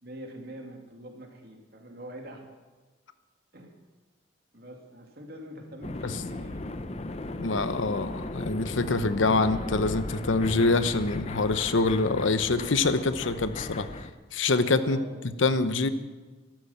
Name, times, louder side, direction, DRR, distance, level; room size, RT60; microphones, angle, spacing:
voice 1, 0.0-2.4 3.5-3.8 4.5-6.7 14.8-15.3, equal, 55° right, 2 dB, 2.5 m, -44 dB
sound 1, 5.8-14.1, left 2 dB, 35° left, 0.7 m, -37 dB
voice 2, 7.4-13.9 14.3-15.0 15.2-15.9, left 3 dB, 85° left, 12 dB, 0.9 m, -25 dB
13.0 x 12.0 x 7.1 m, 1.3 s
head